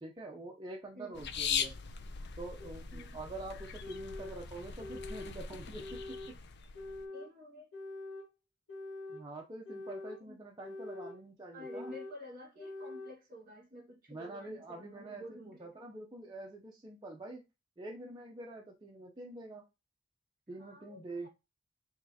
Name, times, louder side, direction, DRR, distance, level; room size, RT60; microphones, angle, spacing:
voice 1, 0.0-1.7 2.4-6.2 9.1-11.9 14.1-17.4 17.8-19.6 20.5-21.3, right 2 dB, 20° right, 0.5 m, -46 dB
sound 1, 1.1-7.0, left 6 dB, 55° left, 0.5 m, -40 dB
sound 2, 1.6-1.7 2.6-2.7 3.6-4.4 4.8-5.3 5.8-6.3 6.7-7.3 7.7-8.3 8.7-9.2 9.6-10.2 10.6-11.2 11.6-12.2 12.6-13.1, left 2 dB, 85° left, 1.9 m, -45 dB
voice 2, 7.1-7.7 10.2-10.4 11.5-15.9 20.6-21.3, left 1 dB, 45° right, 1.6 m, -50 dB
4.9 x 3.1 x 2.7 m
head